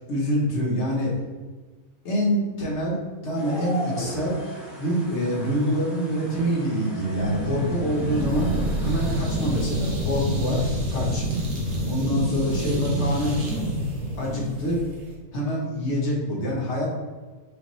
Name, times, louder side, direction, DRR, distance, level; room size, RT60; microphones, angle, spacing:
voice 1, 0.1-1.2 2.0-4.4 4.8-8.5 8.8-11.2 11.9-13.4 14.2-14.8 15.3-16.9, equal, 55° left, -3 dB, 1.1 m, -25 dB
sound 1, 3.3-9.2, right 1 dB, ahead, 0.9 m, -38 dB
sound 2, 7.1-15.1, right 1 dB, 60° right, 1.2 m, -27 dB
5.1 x 2.4 x 3.0 m, 1.4 s
omnidirectional pair, 1.5 m